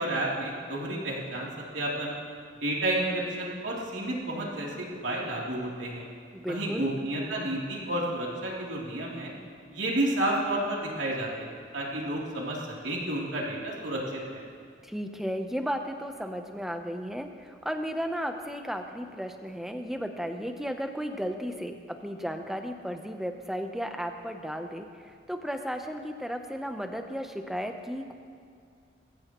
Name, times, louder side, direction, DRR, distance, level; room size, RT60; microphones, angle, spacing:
voice 1, 0.0-2.1 2.6-6.0 6.5-9.3 9.7-11.5 11.7-14.4, right 1 dB, 90° right, -4 dB, 3.1 m, -31 dB
voice 2, 6.3-6.9 14.8-28.1, equal, ahead, 5 dB, 0.7 m, -34 dB
21.5 x 16.0 x 3.1 m, 2.2 s
head